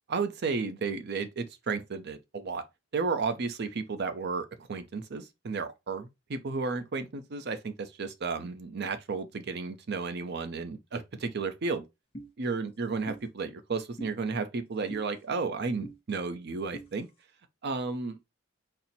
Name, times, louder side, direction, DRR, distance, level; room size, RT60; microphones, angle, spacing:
voice 1, 0.1-2.6 2.9-11.8 12.4-17.1 17.6-18.2, right 4 dB, 55° right, 0.6 m, -33 dB
sound 1, 12.1-12.3 13.1-13.2 14.0-14.1 14.9-15.0 15.8-16.0 16.7-16.9, right 1 dB, 30° left, 0.8 m, -41 dB
4.2 x 2.1 x 3.9 m
head